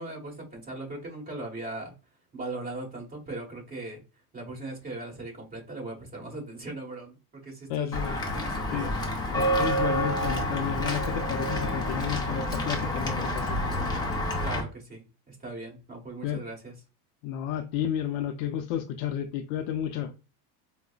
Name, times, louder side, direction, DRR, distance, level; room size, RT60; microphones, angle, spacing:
voice 1, 0.0-1.9 2.3-4.0 4.3-8.0 8.3-8.9 14.4-16.7, right 2 dB, 20° right, 1.3 m, -39 dB
voice 2, 7.7-8.2 8.7-9.0 9.3-13.6 16.2-16.4 17.2-20.1, left 10 dB, 60° left, 0.6 m, -32 dB
Walk footsteps / Bell, 7.9-14.6, equal, 10° left, 0.4 m, -28 dB
4.8 x 2.1 x 2.3 m
supercardioid pair, 135°, 47 cm